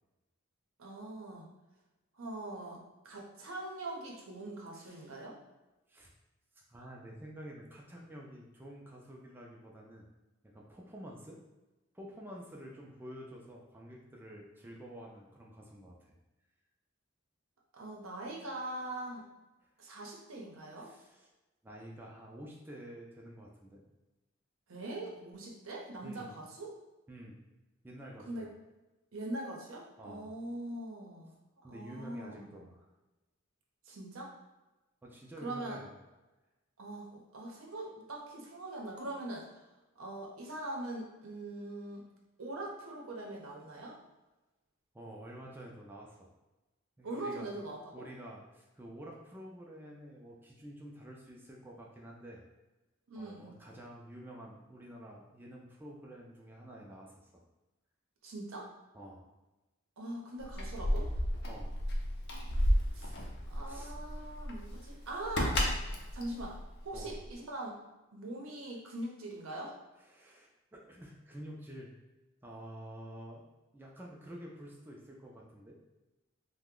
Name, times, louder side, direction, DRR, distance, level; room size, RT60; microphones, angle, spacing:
voice 1, 0.8-1.5 2.2-5.4 17.7-19.2 19.8-20.9 24.7-26.7 28.3-28.5 29.1-31.3 31.6-32.6 33.9-34.3 35.4-35.8 36.8-39.5 40.0-42.0 42.4-44.0 47.0-48.1 53.1-53.5 58.2-58.7 60.0-61.1 62.9-63.1 63.5-65.6 66.1-67.8 68.1-69.8, right 1 dB, 85° right, -1 dB, 0.7 m, -42 dB
voice 2, 4.7-5.1 5.9-6.1 6.5-10.0 10.4-11.4 11.9-16.1 20.8-21.3 21.6-23.8 26.0-26.3 27.1-27.4 27.8-28.5 30.0-30.3 31.6-32.9 35.0-35.9 44.9-46.3 47.0-47.5 47.9-52.4 53.2-57.4 58.9-59.3 61.5-61.8 63.1-63.4 63.6-63.9 66.9-67.2 70.1-71.9 72.4-73.4 73.7-75.8, equal, 10° right, -2 dB, 0.3 m, -49 dB
Keys jangling, 60.4-67.3, equal, 55° left, 0.5 m, -33 dB
2.8 x 2.1 x 3.6 m, 1.1 s
head